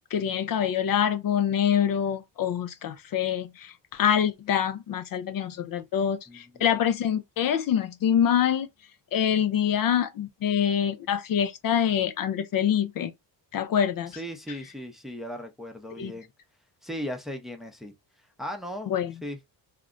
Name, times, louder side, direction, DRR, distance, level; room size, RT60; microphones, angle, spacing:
voice 1, 0.1-8.7 9.1-13.1 13.5-14.2 16.0-16.1 18.9-19.2, left 9 dB, 50° left, 0.5 m, -25 dB
voice 2, 6.3-6.6 14.2-16.3 16.8-17.9 18.4-18.9 19.2-19.4, equal, ahead, 0.6 m, -37 dB
2.4 x 2.1 x 3.7 m
cardioid pair, 100°, 45 cm